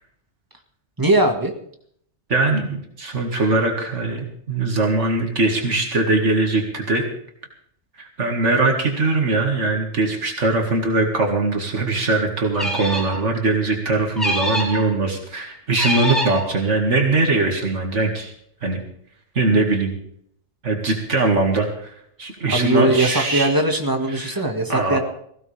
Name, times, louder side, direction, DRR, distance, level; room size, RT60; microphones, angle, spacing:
voice 1, 1.0-1.5 22.5-25.0, right 1 dB, 15° right, 2 dB, 2.0 m, -20 dB
voice 2, 2.3-7.0 8.0-18.3 18.6-18.8 19.4-19.9 20.6-21.9 22.2-23.5 24.1-24.4 24.7-25.0, right 3 dB, 85° right, 2 dB, 2.5 m, -21 dB
sound 1, 12.5-13.2 14.2-14.8 15.8-16.4, equal, ahead, 5.4 m, -24 dB
19.0 x 16.0 x 3.5 m, 0.68 s
omnidirectional pair, 1.2 m